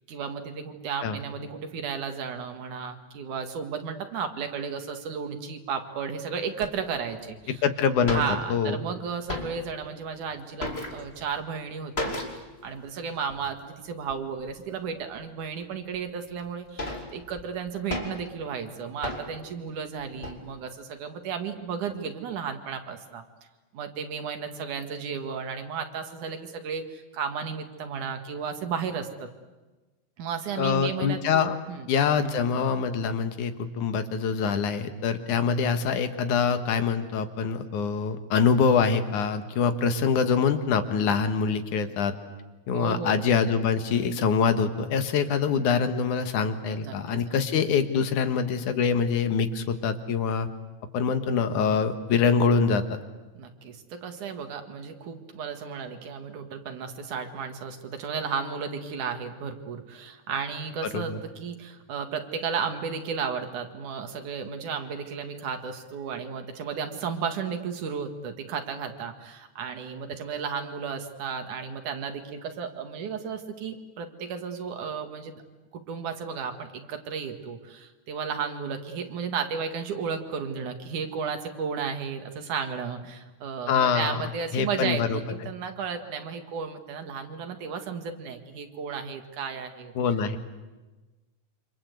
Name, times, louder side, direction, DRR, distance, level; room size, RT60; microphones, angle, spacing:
voice 1, 0.1-7.6 8.1-12.2 12.6-23.2 23.7-29.3 30.2-31.9 42.7-43.2 46.7-47.4 53.4-75.3 75.7-89.9, right 6 dB, 85° right, 6 dB, 3.5 m, -34 dB
sound 1, 6.6-6.7 7.4-7.5 7.7-7.8 8.0-8.8 9.1-9.9 10.2-11.3 12.0-12.5 12.8-12.9 13.3-13.5 14.1-14.6 15.2-15.3 15.9-16.0 16.4-18.4 19.0-19.5 20.0-20.4, left 1 dB, 20° left, 2.8 m, -35 dB
voice 2, 7.6-8.2 8.5-8.8 30.6-31.6 31.9-42.1 42.7-50.5 50.9-53.0 60.9-61.2 83.7-84.2 84.5-85.2 90.0-90.4, left 6 dB, 85° left, 9 dB, 3.0 m, -24 dB
27.5 x 26.0 x 8.2 m, 1.2 s
omnidirectional pair, 3.4 m